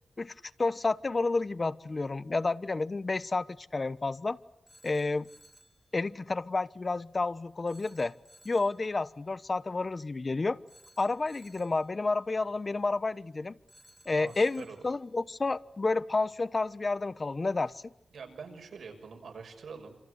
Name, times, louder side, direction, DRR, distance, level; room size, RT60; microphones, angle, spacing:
voice 1, 0.6-3.5 3.7-4.4 4.8-5.3 5.9-8.1 8.4-10.6 11.0-13.5 14.1-17.8, left 3 dB, 40° left, 15 dB, 1.1 m, -30 dB
Telephone, 4.7-5.8 7.7-8.8 10.7-11.8 13.7-14.8, equal, ahead, 3.0 m, -59 dB
voice 2, 14.1-14.8 18.1-20.0, right 5 dB, 90° right, 5 dB, 6.4 m, -45 dB
27.5 x 26.5 x 8.1 m, 0.79 s
wide cardioid pair, 105°, 0 cm